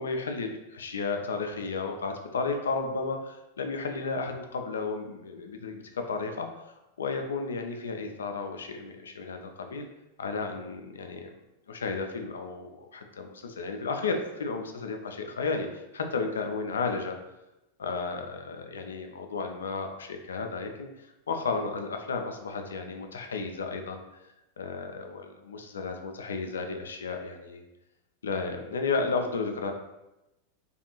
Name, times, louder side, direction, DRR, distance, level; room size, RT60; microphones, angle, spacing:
voice 1, 0.0-6.5 7.0-9.9 10.2-11.3 11.7-17.2 17.8-24.0 24.6-27.6 28.2-29.7, left 4 dB, 65° left, 5 dB, 0.3 m, -33 dB
2.5 x 2.3 x 2.8 m, 0.94 s
figure-of-eight pair, 90°, 0 cm